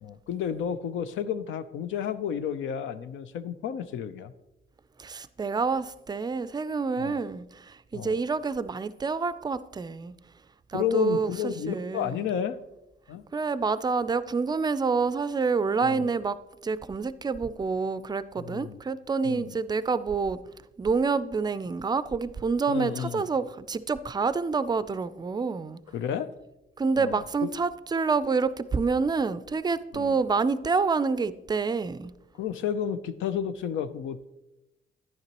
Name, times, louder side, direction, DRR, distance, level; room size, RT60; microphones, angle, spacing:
voice 1, 0.0-4.3 7.0-7.2 7.9-8.2 10.7-12.6 13.1-13.2 15.8-16.1 18.4-18.8 19.2-19.6 22.7-23.2 25.9-26.3 27.0-27.5 29.9-30.2 32.3-34.2, left 8 dB, 80° left, 0.6 m, -31 dB
voice 2, 5.0-10.1 10.7-12.2 13.3-20.4 20.8-25.8 26.8-32.1, right 4 dB, 20° right, 0.4 m, -28 dB
10.5 x 9.7 x 3.0 m
cardioid pair, 90°, 20 cm